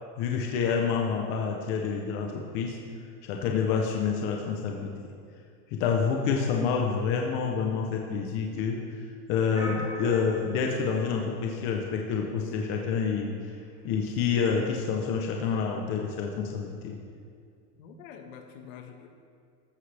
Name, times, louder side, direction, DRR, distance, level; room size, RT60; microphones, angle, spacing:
voice 1, 0.2-2.8 3.2-4.9 5.7-8.8 9.3-13.3 13.8-16.9, left 6 dB, 25° left, 1 dB, 0.7 m, -28 dB
sound 1, 9.5-12.2, equal, 10° right, 2.2 m, -40 dB
voice 2, 17.7-19.1, left 7 dB, 50° left, 4 dB, 1.5 m, -46 dB
14.0 x 13.0 x 3.4 m, 2.3 s
supercardioid pair, 170°, 50 cm